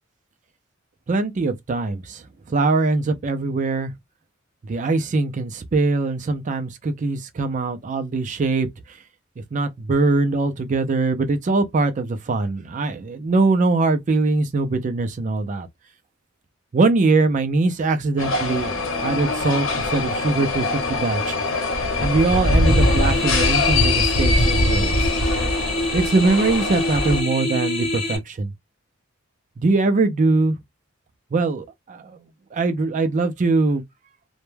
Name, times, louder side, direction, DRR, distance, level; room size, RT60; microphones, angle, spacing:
voice 1, 1.1-3.9 4.6-9.0 9.5-15.7 16.7-21.4 22.0-25.1 25.9-28.5 29.6-30.6 31.3-32.2 32.5-33.8, right 3 dB, 35° right, 0.4 m, -22 dB
sound 1, 18.2-27.2, left 2 dB, 70° left, 0.8 m, -22 dB
sound 2, 22.6-28.2, left 1 dB, 30° left, 0.7 m, -26 dB
2.1 x 2.1 x 3.1 m
head